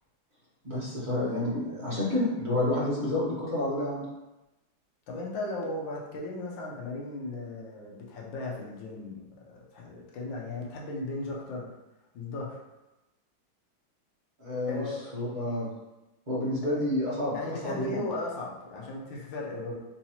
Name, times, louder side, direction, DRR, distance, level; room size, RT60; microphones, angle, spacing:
voice 1, 0.6-4.0 14.4-14.8 15.1-15.7 16.3-18.0, left 1 dB, 35° right, -8 dB, 0.7 m, -29 dB
voice 2, 5.1-11.7 12.1-12.6 14.7-15.1 16.6-16.8 17.3-19.8, left 2 dB, 70° left, -2 dB, 1.4 m, -36 dB
3.8 x 2.9 x 2.8 m, 1.0 s
omnidirectional pair, 2.2 m